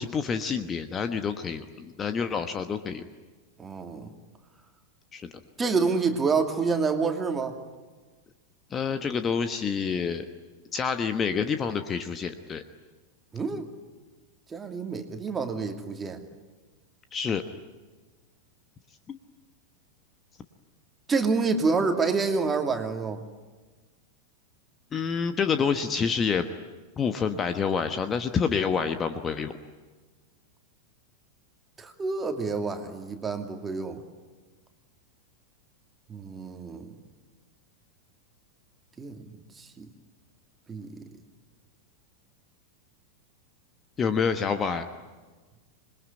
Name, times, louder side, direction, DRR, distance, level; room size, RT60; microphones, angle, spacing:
voice 1, 0.0-3.0 5.1-5.3 8.7-10.2 10.7-12.6 17.1-17.4 19.1-19.2 24.9-26.5 27.0-29.5 44.0-44.9, left 6 dB, 25° left, 9 dB, 1.2 m, -28 dB
voice 2, 3.6-4.1 5.6-7.5 13.3-13.7 14.5-16.2 21.1-23.2 31.8-34.0 36.1-36.9 39.0-39.2 39.8-39.9 40.7-41.0, right 4 dB, 15° right, 5 dB, 2.5 m, -27 dB
26.5 x 21.5 x 9.6 m, 1.3 s
figure-of-eight pair, 90°, 0 cm